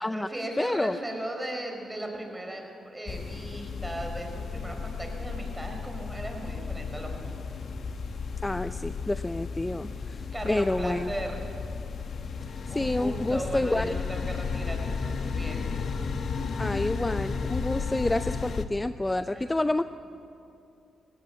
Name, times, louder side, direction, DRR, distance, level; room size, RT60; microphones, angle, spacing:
voice 1, 0.0-7.6 10.0-10.1 10.3-11.4 12.7-15.7 19.3-19.4 19.8-19.9, right 1 dB, 15° right, 3 dB, 5.0 m, -37 dB
voice 2, 0.6-1.0 8.4-11.1 12.7-13.9 16.6-19.8, left 2 dB, 15° left, 11 dB, 0.5 m, -28 dB
sound 1, 3.1-18.6, left 5 dB, 65° left, 1.1 m, -34 dB
18.5 x 16.5 x 9.1 m, 2.7 s
cardioid pair, 65°, 0 cm